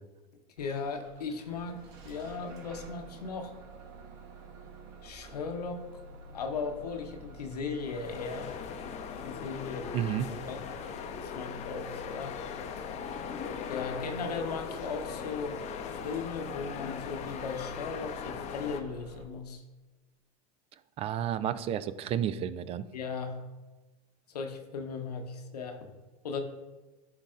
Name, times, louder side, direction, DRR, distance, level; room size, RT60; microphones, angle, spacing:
voice 1, 0.6-3.6 5.0-5.9 6.3-8.5 9.2-10.0 10.5-10.6 11.2-12.4 13.7-15.6 15.9-19.6 22.9-23.4 24.3-25.9 26.2-26.4, left 4 dB, 85° left, 5 dB, 0.9 m, -37 dB
Bus / Engine starting, 0.6-19.2, equal, 55° right, 1.1 m, -49 dB
sound 1, 7.7-18.8, left 7 dB, 35° left, 0.6 m, -40 dB
voice 2, 9.9-10.3 21.0-22.8, right 10 dB, 30° right, 15 dB, 0.3 m, -31 dB
11.5 x 4.0 x 2.5 m, 1.2 s
hypercardioid pair, 100°, 20 cm